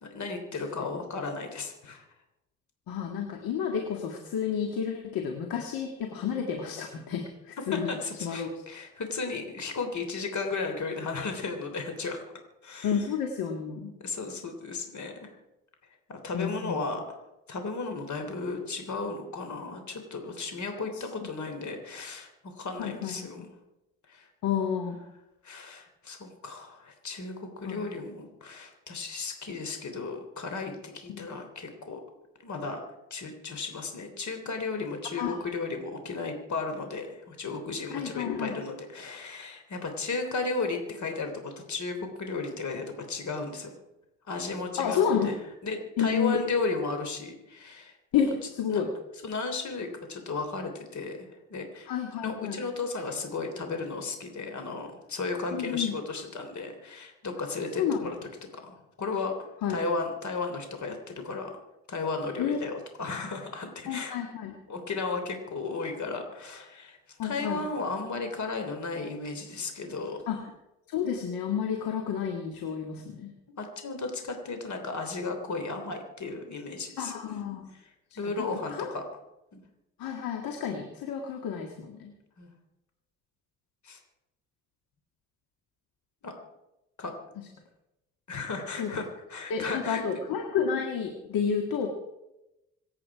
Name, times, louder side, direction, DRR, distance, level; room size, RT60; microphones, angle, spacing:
voice 1, 0.0-2.1 7.7-12.2 12.6-12.9 14.0-15.3 16.1-17.2 17.5-23.6 24.1-24.3 25.4-32.0 32.4-32.8 33.1-43.7 44.3-48.0 48.7-48.8 49.2-51.9 52.2-58.2 58.5-61.5 61.9-64.2 64.7-70.2 73.6-77.4 78.2-79.0 79.5-79.6 82.4-82.5 83.8-84.0 86.2-86.3 87.0-87.1 88.3-90.0, left 3 dB, 50° left, 5 dB, 3.4 m, -34 dB
voice 2, 2.9-8.5 12.8-13.9 16.3-16.8 21.2-21.3 22.8-23.3 24.4-25.0 27.6-27.9 31.1-31.3 35.2-35.4 37.9-38.6 44.8-45.3 46.0-46.4 48.1-48.9 51.9-52.6 55.5-55.9 57.8-58.0 59.6-59.8 62.4-62.6 63.9-64.6 67.2-67.6 70.3-70.5 70.9-73.4 77.0-77.7 78.3-78.4 78.7-78.9 80.0-82.1 87.4-87.5 88.8-89.0 89.5-91.9, left 7 dB, 70° left, 3 dB, 2.1 m, -30 dB
26.5 x 9.0 x 4.8 m, 0.93 s
hypercardioid pair, 50°, 36 cm